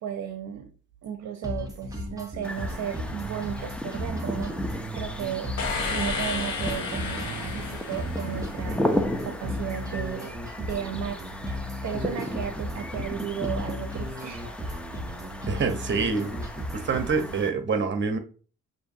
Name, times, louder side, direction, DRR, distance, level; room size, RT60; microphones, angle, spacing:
voice 1, 0.0-0.7 1.0-11.2 11.5-14.5, right 9 dB, 65° right, 7 dB, 0.6 m, -35 dB
sound 1, 1.4-17.4, equal, 10° right, 1.0 m, -35 dB
sound 2, 2.4-17.5, left 1 dB, 5° left, 0.5 m, -35 dB
sound 3, 5.6-8.7, left 4 dB, 70° left, 1.2 m, -32 dB
voice 2, 15.5-16.4 16.7-18.2, right 5 dB, 40° right, 8 dB, 0.9 m, -26 dB
6.1 x 2.7 x 2.6 m, 0.38 s
cardioid pair, 90°, 30 cm